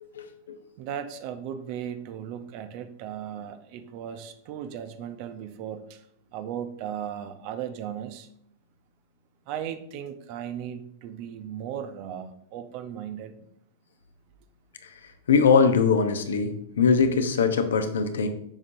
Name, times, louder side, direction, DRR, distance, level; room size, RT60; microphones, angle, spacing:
voice 1, 0.0-0.6 14.8-14.9 15.3-18.3, left 5 dB, 75° left, 7 dB, 0.8 m, -22 dB
voice 2, 0.8-6.0 6.3-8.3 9.5-13.3, right 9 dB, 50° right, 9 dB, 0.6 m, -36 dB
7.2 x 5.2 x 2.7 m, 0.72 s
figure-of-eight pair, 95°, 0 cm